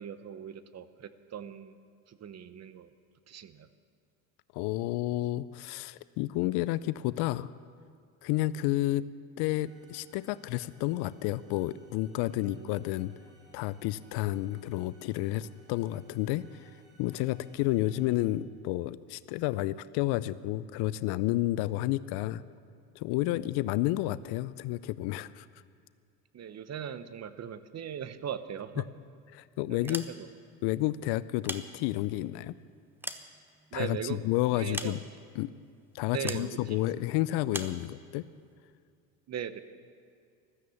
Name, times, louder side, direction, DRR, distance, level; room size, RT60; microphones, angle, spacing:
voice 1, 0.0-1.8 2.1-2.9 3.3-3.7 12.3-12.8 26.3-28.9 29.7-30.3 33.7-34.2 34.5-34.9 36.1-37.0 39.3-39.6, right 8 dB, 35° right, 13 dB, 0.9 m, -39 dB
voice 2, 4.5-7.5 8.2-9.1 9.4-13.1 13.5-16.7 17.0-22.4 23.0-25.4 29.3-30.0 30.6-32.6 33.7-35.0 35.4-35.5 35.9-38.2, left 16 dB, 60° left, 17 dB, 0.6 m, -31 dB
sound 1, 9.5-18.2, right 2 dB, 65° right, 4.6 m, -61 dB
sound 2, 29.7-30.5 31.2-32.2 32.7-34.0 34.7-35.4 36.3-36.5 37.5-37.8, right 1 dB, 5° right, 1.0 m, -40 dB
15.5 x 13.5 x 7.0 m, 2.3 s
hypercardioid pair, 80°, 45 cm